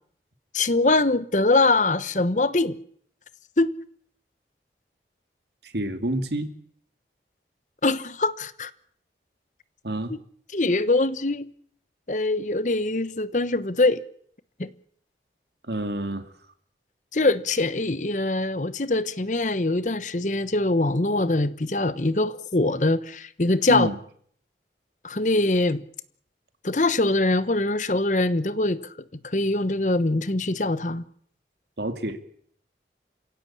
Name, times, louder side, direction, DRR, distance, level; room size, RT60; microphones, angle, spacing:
voice 1, 0.5-2.8 3.6-3.8 7.8-8.7 10.5-11.5 12.1-14.0 14.6-14.7 17.1-23.9 25.0-25.8 26.6-28.8 29.2-31.0, left 2 dB, 45° left, 1.0 m, -23 dB
voice 2, 5.6-6.5 9.8-10.1 15.6-16.3 23.7-24.0 31.8-32.2, right 1 dB, 70° right, 2.5 m, -28 dB
28.5 x 16.5 x 8.6 m
head